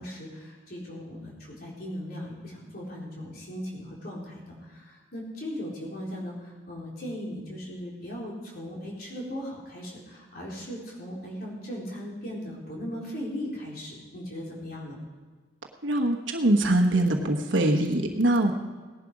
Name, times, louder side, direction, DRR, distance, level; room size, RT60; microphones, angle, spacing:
voice 1, 0.0-15.0, equal, 50° left, -4 dB, 4.0 m, -38 dB
voice 2, 15.8-18.5, right 1 dB, 75° right, 3 dB, 1.3 m, -23 dB
18.0 x 11.0 x 4.9 m, 1.4 s
head